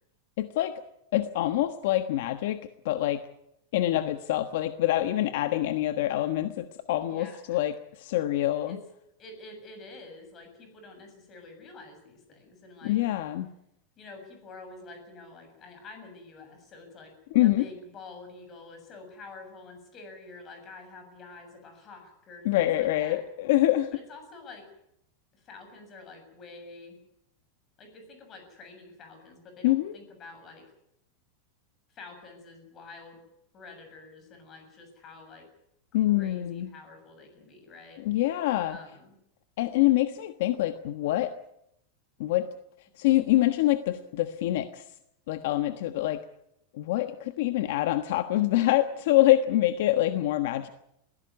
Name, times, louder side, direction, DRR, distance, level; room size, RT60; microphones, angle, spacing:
voice 1, 0.4-0.7 1.1-2.6 2.8-3.2 3.7-8.8 12.8-13.5 17.3-17.6 22.4-23.9 29.6-29.9 35.9-36.7 38.0-38.8 39.6-41.3 42.2-42.5 43.0-44.8 45.3-46.2 46.7-50.7, left 15 dB, 60° left, 9 dB, 1.3 m, -25 dB
voice 2, 7.0-7.6 8.7-8.8 9.2-13.0 14.0-17.1 17.4-23.2 23.9-24.7 25.3-27.0 27.8-30.6 31.9-33.2 33.5-35.5 35.9-38.0 38.7-39.2, left 3 dB, 25° left, 6 dB, 7.1 m, -48 dB
22.0 x 16.5 x 9.5 m, 0.78 s
supercardioid pair, 165°, 0 cm